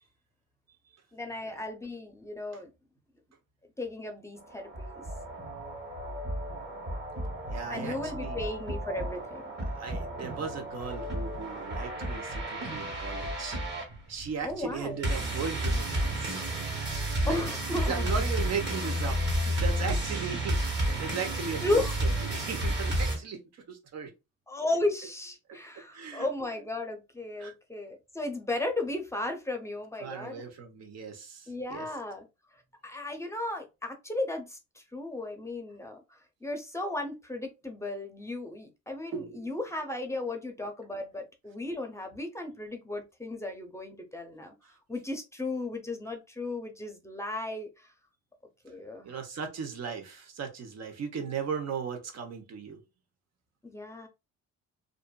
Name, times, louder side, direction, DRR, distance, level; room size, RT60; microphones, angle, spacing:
voice 1, 1.1-2.7 3.8-5.0 7.7-9.4 14.4-15.0 17.3-18.1 21.6-21.9 24.5-30.4 31.5-32.2 32.8-44.5 44.9-47.9 48.6-49.1 53.6-54.1, left 2 dB, 10° left, 0.6 m, -35 dB
sound 1, 4.4-23.2, right 1 dB, 35° right, 1.3 m, -32 dB
voice 2, 7.5-8.4 9.8-13.6 14.1-16.6 17.2-17.4 17.8-24.1 25.5-26.3 27.4-27.5 30.0-31.9 39.1-39.6 49.0-52.8, right 6 dB, 60° right, 0.9 m, -37 dB
2.5 x 2.5 x 2.2 m
cardioid pair, 90°, 30 cm